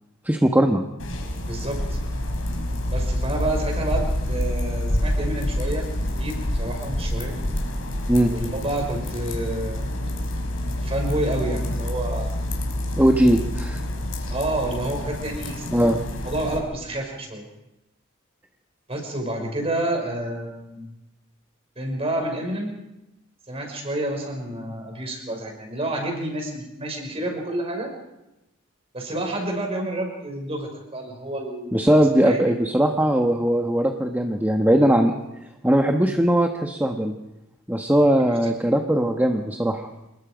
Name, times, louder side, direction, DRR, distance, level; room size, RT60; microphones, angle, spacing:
voice 1, 0.2-0.8 8.1-8.3 13.0-13.8 15.7-16.0 31.7-35.1 35.6-37.1 37.7-39.9, right 1 dB, 10° right, 3 dB, 1.2 m, -19 dB
sound 1, 1.0-16.6, left 1 dB, 75° left, 5.0 m, -27 dB
voice 2, 1.5-2.0 2.9-5.9 6.2-7.4 8.3-9.9 10.8-12.4 14.3-15.6 16.2-17.5 18.9-20.9 21.8-22.7 23.5-27.9 28.9-31.9 32.3-32.4 38.2-38.5, right 1 dB, 30° right, 2 dB, 5.7 m, -29 dB
28.0 x 21.0 x 5.2 m, 0.94 s
head